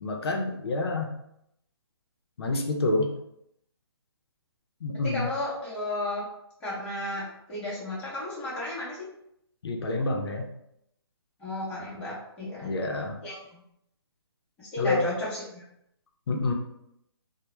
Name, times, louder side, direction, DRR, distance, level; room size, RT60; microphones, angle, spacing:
voice 1, 0.0-1.1 2.4-3.1 4.8-5.3 9.6-10.5 12.6-13.1 14.8-15.1 16.3-16.5, left 2 dB, 65° left, 2 dB, 0.5 m, -27 dB
voice 2, 5.0-6.2 6.6-9.1 11.4-12.7 13.2-13.6 14.6-15.7, left 1 dB, 10° left, -9 dB, 0.7 m, -33 dB
2.2 x 2.0 x 3.0 m, 0.77 s
hypercardioid pair, 160°, 14 cm